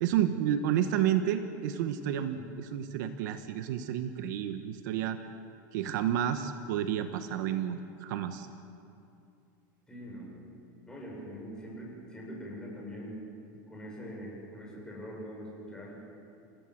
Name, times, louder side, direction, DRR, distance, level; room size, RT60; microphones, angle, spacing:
voice 1, 0.0-5.2 5.7-8.5, right 10 dB, 65° right, 8 dB, 1.3 m, -30 dB
voice 2, 9.9-10.3 10.9-13.2 13.7-15.9, equal, 5° left, -4 dB, 7.0 m, -43 dB
30.0 x 16.0 x 7.6 m, 2.6 s
supercardioid pair, 165°, 11 cm